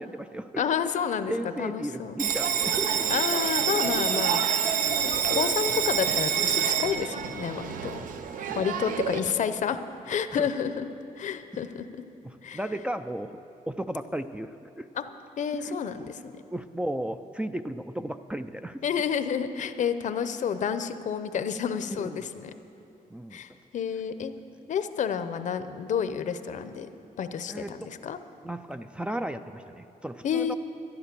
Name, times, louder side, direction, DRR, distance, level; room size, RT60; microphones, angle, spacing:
voice 1, 0.0-0.6 1.3-3.1 3.8-4.4 7.8-8.1 8.5-8.6 10.4-10.5 12.2-14.9 15.6-16.1 16.4-18.8 21.9-22.2 23.1-23.4 27.5-28.0 28.4-30.5, right 1 dB, 10° right, 6 dB, 0.4 m, -35 dB
voice 2, 0.6-2.2 3.1-4.4 5.0-8.0 8.5-9.8 10.0-10.9 11.2-11.9 12.4-12.6 15.0-15.1 15.4-16.4 18.8-22.5 23.3-24.3 24.7-26.9 27.2-28.2 30.2-30.6, left 7 dB, 60° left, 11 dB, 0.7 m, -30 dB
Bell, 2.2-9.2, right 8 dB, 70° right, 0.7 m, -27 dB
13.0 x 11.0 x 6.8 m, 2.8 s
cardioid pair, 115°, 14 cm